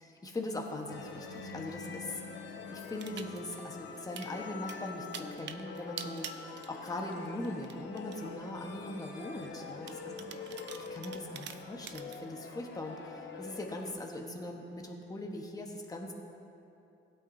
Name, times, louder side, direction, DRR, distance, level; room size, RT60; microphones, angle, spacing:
voice 1, 0.0-2.2 2.7-6.3 6.7-9.9 10.9-16.1, left 1 dB, 20° left, 1 dB, 1.2 m, -40 dB
sound 1, 0.9-13.9, left 5 dB, 65° left, 1.0 m, -45 dB
sound 2, 3.0-3.6 4.0-4.3 4.7-7.2 7.4-8.2 8.8-8.9 9.9-12.2, right 9 dB, 65° right, 0.6 m, -45 dB
16.5 x 8.6 x 2.7 m, 2.7 s
cardioid pair, 90°, 20 cm